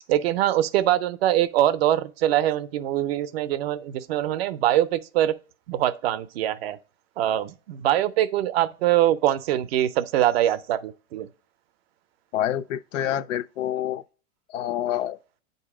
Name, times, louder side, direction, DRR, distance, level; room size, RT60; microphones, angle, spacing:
voice 1, 0.1-5.3 5.7-6.8 7.2-11.3, right 12 dB, 50° right, 0.5 m, -23 dB
voice 2, 12.3-14.0 14.5-15.2, left 11 dB, 70° left, 0.5 m, -27 dB
8.0 x 2.7 x 4.8 m
supercardioid pair, 155°, 40 cm